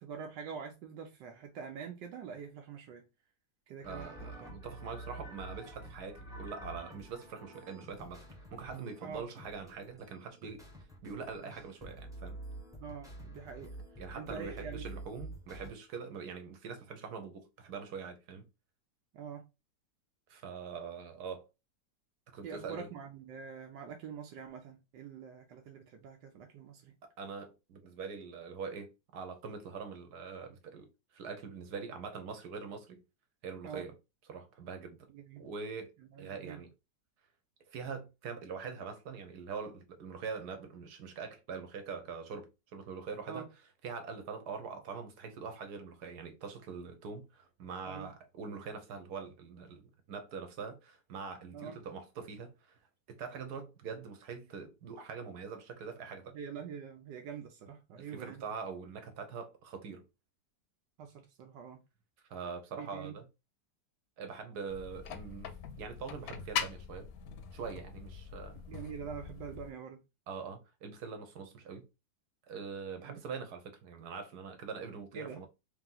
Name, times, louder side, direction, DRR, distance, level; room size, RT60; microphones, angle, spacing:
voice 1, 0.0-3.1 3.7-4.5 9.0-9.2 11.4-11.5 12.8-14.8 19.1-19.4 22.4-26.9 33.6-33.9 35.1-35.4 36.0-36.6 43.3-43.5 47.9-48.1 51.5-51.8 56.3-58.4 61.0-61.8 62.8-63.2 68.7-70.0 73.0-73.2 75.1-75.5, right 6 dB, 85° right, 1.3 m, -45 dB
sound 1, 3.8-15.7, right 1 dB, 5° right, 0.6 m, -48 dB
voice 2, 3.8-8.2 8.5-10.6 11.0-12.4 14.0-18.5 20.3-21.4 22.3-22.9 27.0-33.0 33.4-33.9 34.3-35.1 35.4-35.9 36.2-36.7 37.7-43.5 43.8-52.8 53.1-56.4 58.0-60.1 62.3-63.3 64.2-67.1 67.5-68.8 70.3-71.8 72.4-75.5, right 5 dB, 65° right, 1.4 m, -43 dB
sound 2, 64.7-69.7, left 8 dB, 70° left, 1.0 m, -42 dB
3.5 x 3.0 x 3.8 m
omnidirectional pair, 1.9 m